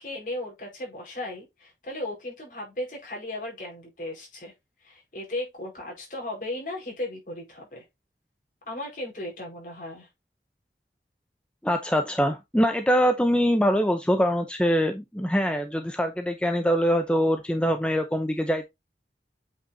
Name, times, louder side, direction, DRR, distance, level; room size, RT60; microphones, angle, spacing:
voice 1, 0.0-4.5 4.8-7.8 8.6-10.1, left 1 dB, 50° left, 4.6 m, -36 dB
voice 2, 11.6-18.7, equal, 5° left, 0.6 m, -23 dB
8.2 x 5.9 x 2.7 m
head